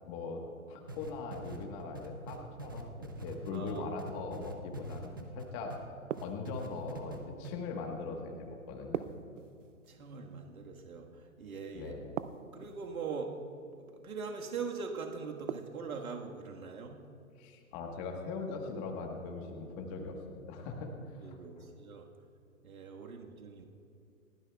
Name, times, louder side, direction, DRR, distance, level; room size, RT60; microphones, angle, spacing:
voice 1, 0.1-0.4 0.7-5.7 6.1-9.1 11.7-12.1 17.4-20.9 21.2-21.7, left 4 dB, 25° left, 2 dB, 1.4 m, -41 dB
sound 1, 0.9-5.8 6.1-7.2 7.4-7.5, right 2 dB, 15° right, 0.4 m, -44 dB
voice 2, 3.5-3.8 9.9-11.9 12.5-13.3 14.0-17.0 21.2-22.1 22.6-23.6, right 5 dB, 80° right, 2 dB, 1.7 m, -41 dB
sound 2, 6.1-6.9 8.9-10.0 12.2-12.9 15.5-16.1, right 10 dB, 60° right, 0.6 m, -40 dB
29.0 x 11.5 x 2.4 m, 2.7 s
hypercardioid pair, 140°, 42 cm